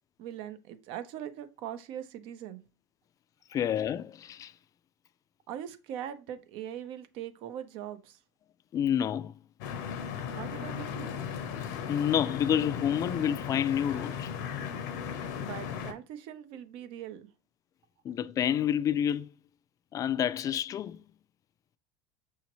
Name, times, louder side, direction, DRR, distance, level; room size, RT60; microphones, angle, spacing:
voice 1, 0.2-2.6 3.5-3.6 5.5-8.2 10.3-11.2 15.4-17.3, right 10 dB, 65° right, 0.6 m, -41 dB
voice 2, 3.5-4.5 8.7-9.3 11.9-14.3 18.0-19.3 19.9-21.0, left 9 dB, 35° left, 0.4 m, -29 dB
sound 1, 9.6-15.9, left 7 dB, 80° left, 0.7 m, -36 dB
6.1 x 2.8 x 3.0 m
supercardioid pair, 100°, 10 cm